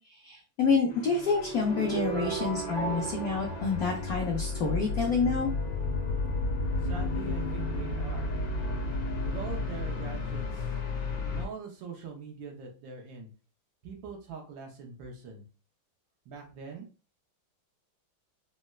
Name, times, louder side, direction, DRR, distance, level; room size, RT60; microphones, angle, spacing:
voice 1, 0.0-5.5, left 5 dB, 85° left, 1 dB, 0.8 m, -28 dB
sound 1, 0.9-11.5, left 2 dB, 65° left, 1.3 m, -33 dB
sound 2, 1.7-4.7, right 5 dB, 55° right, 1.6 m, -36 dB
voice 2, 6.8-8.3 9.2-10.8 11.3-13.3 13.8-15.4 16.2-16.9, right 5 dB, 75° right, 1 dB, 1.5 m, -43 dB
4.0 x 2.1 x 2.2 m, 0.36 s
omnidirectional pair, 2.2 m